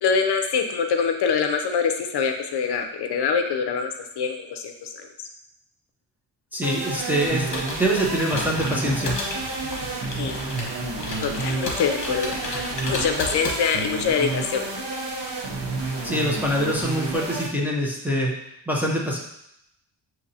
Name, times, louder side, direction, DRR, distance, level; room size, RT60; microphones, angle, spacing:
voice 1, 0.0-4.9 10.2-10.4 11.2-14.7, left 6 dB, 65° left, 6 dB, 0.5 m, -24 dB
voice 2, 6.5-9.1 16.0-18.3 18.7-19.2, equal, 5° right, -3 dB, 0.5 m, -24 dB
sound 1, 6.6-17.5, right 3 dB, 70° right, 0.8 m, -30 dB
Computer keyboard, 7.1-14.0, left 2 dB, 45° left, 1.1 m, -33 dB
6.4 x 2.8 x 2.7 m, 0.80 s
wide cardioid pair, 160°, 43 cm